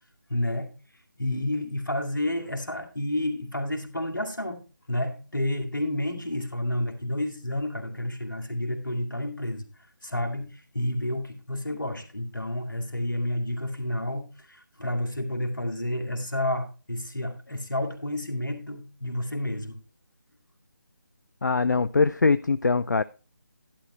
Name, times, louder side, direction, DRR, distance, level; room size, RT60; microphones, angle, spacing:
voice 1, 0.3-0.8 1.2-4.6 4.9-9.7 10.0-19.8, left 1 dB, 80° left, 2.2 m, -30 dB
voice 2, 21.4-23.0, left 4 dB, 60° left, 0.4 m, -22 dB
11.5 x 8.9 x 3.1 m
figure-of-eight pair, 155°, 11 cm